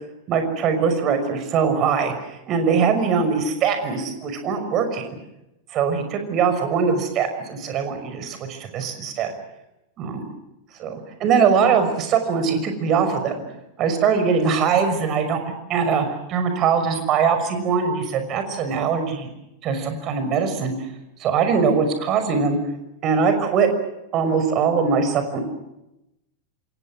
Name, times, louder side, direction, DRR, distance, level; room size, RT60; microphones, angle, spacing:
voice 1, 0.3-5.1 5.7-9.3 10.0-10.2 10.8-13.3 13.8-15.4 15.7-19.3 19.6-20.7 21.2-22.6 23.0-23.7 24.1-25.4, right 6 dB, 35° right, 8 dB, 5.8 m, -21 dB
27.5 x 27.5 x 6.3 m, 0.89 s
figure-of-eight pair, 90°, 0 cm